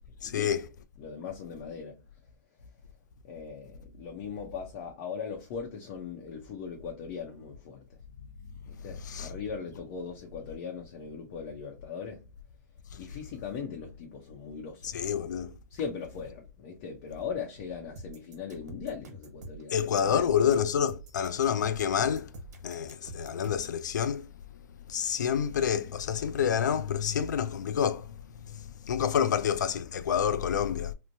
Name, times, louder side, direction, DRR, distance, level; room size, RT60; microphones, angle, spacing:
voice 1, 0.2-0.7 8.9-9.3 14.8-15.5 19.7-22.3 22.6-24.3 24.9-30.9, left 8 dB, 90° left, 0.4 m, -28 dB
voice 2, 1.0-2.0 3.2-7.8 8.7-12.2 13.0-15.1 15.7-20.3 29.2-29.3, left 6 dB, 50° left, 0.7 m, -39 dB
sound 1, 18.0-23.8, right 2 dB, 75° right, 1.1 m, -46 dB
3.0 x 2.1 x 2.6 m
hypercardioid pair, 140°, 9 cm